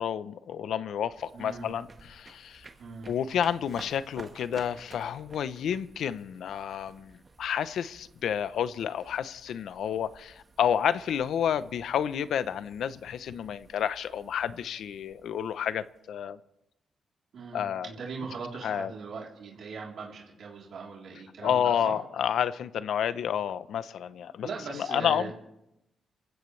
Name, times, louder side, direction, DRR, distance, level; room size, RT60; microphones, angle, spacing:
voice 1, 0.0-2.7 3.1-16.4 17.5-17.9 18.6-18.9 21.4-24.5 24.7-25.3, left 9 dB, 85° left, 0.7 m, -30 dB
sound 1, 1.0-16.2, right 3 dB, 30° right, 1.4 m, -53 dB
voice 2, 1.3-1.7 2.8-3.1 17.3-22.0 24.4-25.3, right 5 dB, 70° right, 3.4 m, -40 dB
27.0 x 16.0 x 3.2 m
cardioid pair, 120°, 0 cm